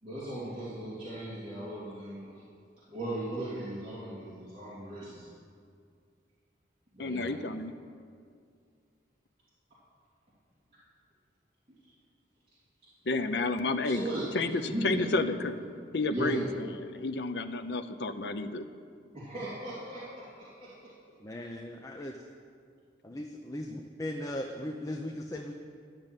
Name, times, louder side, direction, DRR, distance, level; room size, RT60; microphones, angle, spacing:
voice 1, 0.0-2.4 2.9-5.2 6.9-7.3 13.8-15.0 16.1-16.5 19.1-20.9, right 1 dB, 30° right, -11 dB, 3.1 m, -37 dB
voice 2, 7.0-7.7 13.1-14.1 14.3-15.6 15.9-18.6, left 3 dB, 65° left, 8 dB, 0.6 m, -31 dB
voice 3, 21.2-22.2 23.0-25.5, left 1 dB, 20° left, 2 dB, 0.6 m, -38 dB
12.0 x 6.7 x 9.0 m, 2.2 s
head